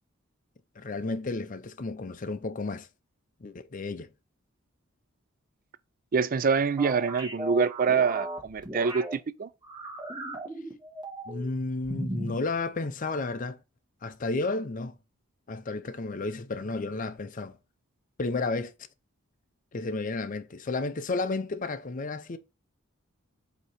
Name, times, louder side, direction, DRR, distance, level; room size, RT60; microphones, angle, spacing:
voice 1, 0.8-2.9 3.4-4.1 11.3-13.6 14.0-15.0 15.5-17.6 18.2-18.7 19.7-22.4, left 3 dB, 40° left, 0.5 m, -32 dB
voice 2, 6.1-9.5, right 5 dB, 40° right, 0.4 m, -25 dB
sound 1, 6.8-9.1 9.6-11.5 11.8-12.4, right 1 dB, 20° right, 1.3 m, -37 dB
8.0 x 2.9 x 4.2 m
head